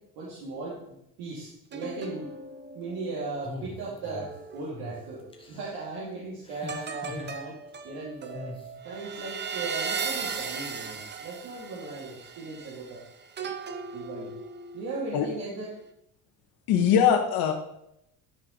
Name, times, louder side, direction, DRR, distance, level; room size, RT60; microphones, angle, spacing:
voice 1, 0.2-2.3 2.7-5.2 5.5-7.6 7.8-8.5 8.8-13.0 13.9-14.3 14.7-15.7, right 3 dB, 80° right, -7 dB, 2.8 m, -37 dB
sound 1, 1.7-5.3 6.7-15.2 15.6-15.9, right 5 dB, 30° right, 0.8 m, -38 dB
sound 2, 3.4-4.3 4.7-5.0 5.3-5.8 6.5-7.4 8.3-8.7, left 2 dB, 15° left, 1.6 m, -41 dB
voice 2, 16.7-17.5, left 8 dB, 70° left, 4 dB, 1.9 m, -21 dB
13.0 x 4.9 x 4.1 m, 0.77 s
cardioid pair, 120°, 37 cm